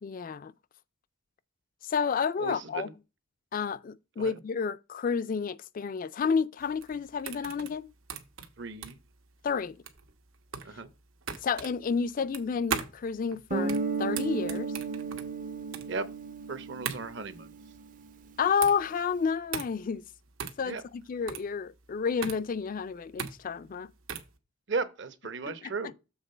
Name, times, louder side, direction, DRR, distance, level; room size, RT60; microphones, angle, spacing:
voice 1, 0.0-0.5 1.8-2.9 3.5-7.9 9.4-9.8 11.4-14.7 18.4-20.0 20.6-23.9 25.5-25.6, left 6 dB, 40° left, 0.3 m, -30 dB
voice 2, 2.4-2.9 4.2-4.4 8.6-9.0 10.6-10.9 15.9-16.1 16.5-17.5 20.6-20.8 24.7-25.9, right 4 dB, 60° right, 0.9 m, -36 dB
sound 1, 6.6-24.4, right 7 dB, 80° right, 1.1 m, -39 dB
Guitar, 13.5-18.1, right 4 dB, 40° right, 0.5 m, -34 dB
7.2 x 3.8 x 5.4 m
head